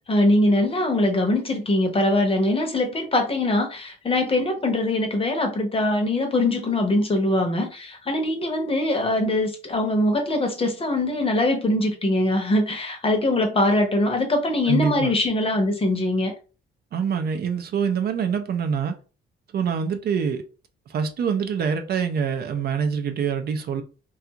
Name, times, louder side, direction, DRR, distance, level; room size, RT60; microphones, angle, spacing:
voice 1, 0.1-16.3, left 1 dB, 30° left, 0.8 m, -22 dB
voice 2, 14.7-15.1 16.9-19.0 19.5-20.4 20.9-23.8, right 6 dB, 55° right, 0.4 m, -25 dB
2.4 x 2.3 x 2.8 m
cardioid pair, 90°, 20 cm